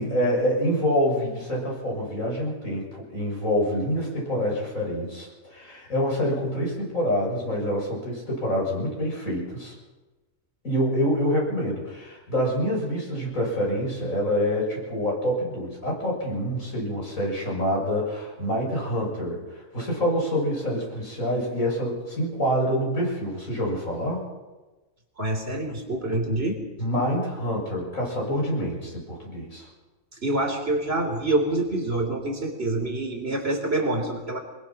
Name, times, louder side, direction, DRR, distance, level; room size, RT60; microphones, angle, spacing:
voice 1, 0.0-9.7 10.6-24.2 26.8-29.7, equal, 85° left, -2 dB, 7.5 m, -26 dB
voice 2, 25.2-26.6 30.2-34.4, right 2 dB, 50° right, 5 dB, 3.9 m, -26 dB
24.5 x 21.5 x 6.0 m, 1.2 s
omnidirectional pair, 1.4 m